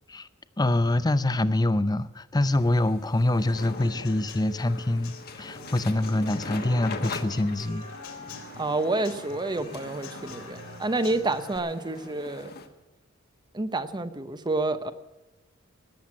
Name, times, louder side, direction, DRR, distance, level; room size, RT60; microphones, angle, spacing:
voice 1, 0.6-7.8, left 1 dB, 20° left, 14 dB, 0.6 m, -25 dB
sound 1, 2.5-12.7, left 3 dB, 45° left, 1.4 m, -42 dB
Human voice / Acoustic guitar / Drum, 3.6-11.6, left 4 dB, 70° left, 2.6 m, -46 dB
Wind instrument woodwind instrument, 5.4-12.8, equal, 40° right, 3.0 m, -48 dB
voice 2, 8.6-12.5 13.5-14.9, right 2 dB, 20° right, 11 dB, 0.9 m, -29 dB
19.0 x 7.9 x 8.7 m, 1.1 s
head